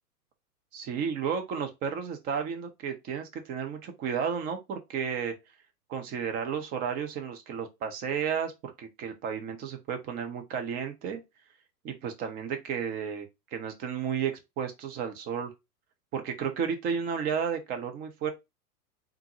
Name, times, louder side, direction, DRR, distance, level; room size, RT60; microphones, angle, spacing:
voice 1, 0.7-5.3 5.9-11.2 11.8-15.5 16.1-18.3, right 7 dB, 20° right, 0.5 m, -32 dB
3.6 x 2.5 x 2.9 m
hypercardioid pair, 115°, 47 cm